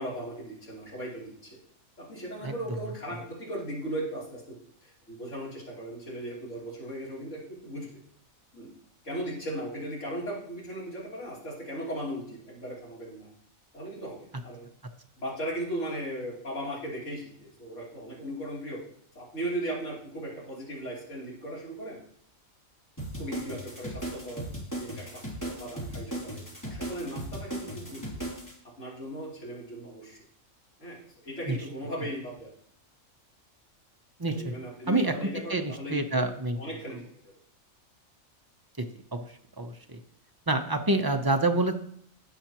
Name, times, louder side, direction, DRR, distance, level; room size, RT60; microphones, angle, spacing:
voice 1, 0.0-1.6 2.0-7.9 8.5-8.7 9.0-13.3 13.7-14.6 15.2-18.8 19.2-22.0 23.2-24.5 24.8-28.0 28.6-30.2 30.8-32.5 34.3-37.3, right 1 dB, 60° left, -6 dB, 3.6 m, -37 dB
sound 1, 23.0-28.5, right 1 dB, 15° left, 2.8 m, -37 dB
voice 2, 34.2-34.5 34.9-35.1 35.5-36.6 38.8-38.9 39.1-39.2 39.6-40.0 40.5-41.7, right 2 dB, 25° right, 5 dB, 0.5 m, -27 dB
16.0 x 5.6 x 3.0 m, 0.64 s
omnidirectional pair, 1.4 m